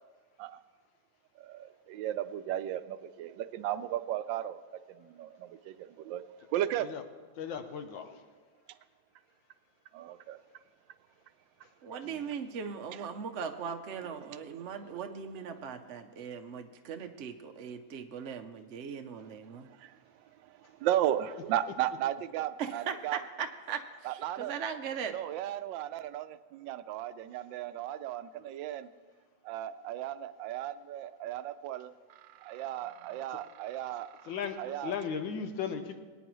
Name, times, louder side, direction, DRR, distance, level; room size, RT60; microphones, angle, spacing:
voice 1, 1.4-4.6 4.9-6.2 6.5-6.9 9.9-10.4 12.9-13.1 14.6-14.7 19.7-23.2 24.0-24.6 25.1-28.9 29.4-34.9, right 12 dB, 80° right, 12 dB, 1.3 m, -35 dB
voice 2, 7.4-8.2 12.0-12.2 34.3-34.6 34.8-36.0, left 7 dB, 85° left, 7 dB, 1.5 m, -36 dB
voice 3, 11.8-19.7 22.6-23.8 24.1-25.1, right 7 dB, 60° right, 5 dB, 0.7 m, -39 dB
23.5 x 9.3 x 3.1 m, 1.4 s
omnidirectional pair, 2.0 m